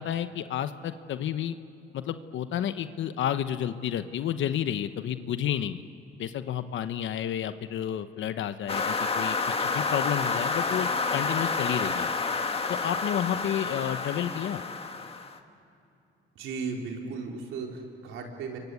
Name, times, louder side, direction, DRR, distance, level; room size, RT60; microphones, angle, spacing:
voice 1, 0.0-1.6 1.9-5.8 6.2-12.1 12.7-14.6, left 10 dB, 75° left, 10 dB, 1.1 m, -31 dB
sound 1, 8.7-15.4, left 4 dB, 30° left, 2.0 m, -29 dB
voice 2, 16.4-18.6, right 4 dB, 90° right, 1 dB, 4.3 m, -36 dB
30.0 x 23.5 x 8.5 m, 2.7 s
cardioid pair, 90°, 20 cm